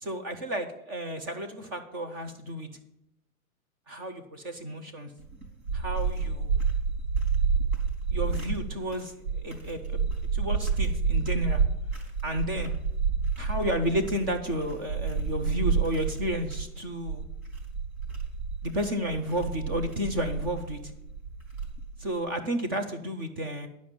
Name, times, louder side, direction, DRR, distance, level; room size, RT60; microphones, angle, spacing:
voice 1, 0.0-2.7 3.9-5.1 5.7-6.5 8.1-9.1 9.4-10.0 10.3-11.6 12.2-12.7 13.4-17.2 18.6-20.9 22.0-23.7, equal, 15° right, 6 dB, 0.4 m, -32 dB
sound 1, 5.2-22.0, right 5 dB, 80° right, 3.9 m, -29 dB
9.8 x 5.1 x 7.2 m, 0.83 s
figure-of-eight pair, 120°, 43 cm